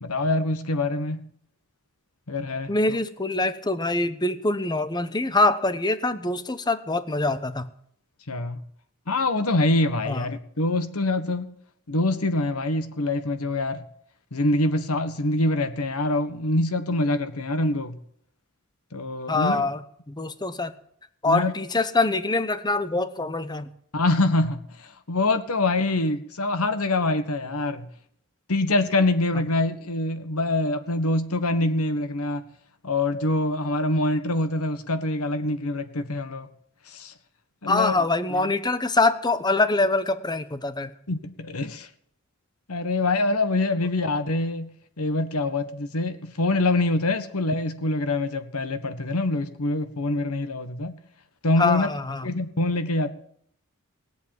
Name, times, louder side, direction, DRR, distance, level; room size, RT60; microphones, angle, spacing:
voice 1, 0.0-1.2 2.3-2.7 8.3-8.6 9.1-11.5 11.9-13.8 14.3-18.0 18.9-19.6 21.2-21.5 23.9-27.9 28.5-32.4 32.8-36.5 36.9-37.1 37.6-38.0 38.3-38.5 41.1-41.9 42.7-50.9 51.4-51.9 52.2-53.1, left 2 dB, 75° left, 10 dB, 1.5 m, -25 dB
voice 2, 2.7-7.7 10.1-10.2 19.3-19.8 20.1-20.7 21.2-23.7 37.7-40.9 51.6-52.3, left 2 dB, 20° left, 12 dB, 0.9 m, -24 dB
17.5 x 8.4 x 9.2 m, 0.66 s
head